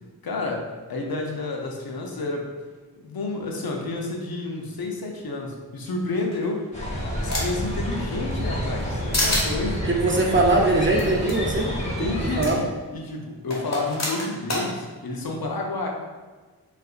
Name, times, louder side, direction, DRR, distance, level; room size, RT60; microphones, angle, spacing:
voice 1, 0.2-2.5 3.0-6.8 7.2-9.9 11.8-15.9, left 2 dB, 70° left, 1 dB, 0.6 m, -30 dB
sound 1, 6.3-7.7 8.1-8.9 9.1-9.5 11.0-11.1 11.3-11.4 12.4-12.5 13.5-14.7, left 1 dB, 45° left, 1.1 m, -27 dB
sound 2, 6.7-12.5, equal, 20° left, 0.9 m, -29 dB
voice 2, 9.9-12.1 12.4-12.6, right 2 dB, 30° right, 0 dB, 0.5 m, -21 dB
3.6 x 2.5 x 2.4 m, 1.4 s
wide cardioid pair, 50°, 38 cm